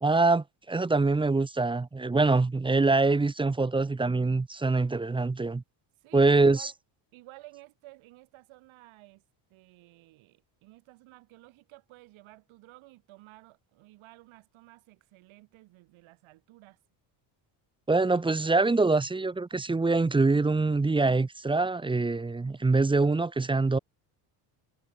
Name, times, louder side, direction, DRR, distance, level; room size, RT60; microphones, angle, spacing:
voice 1, 0.0-5.6 6.1-6.7 17.9-23.8, right 3 dB, 10° right, 0.7 m, -24 dB
voice 2, 6.0-6.7 7.1-9.2 9.5-16.8, right 19 dB, 80° right, 3.3 m, -54 dB
cardioid pair, 120°, 47 cm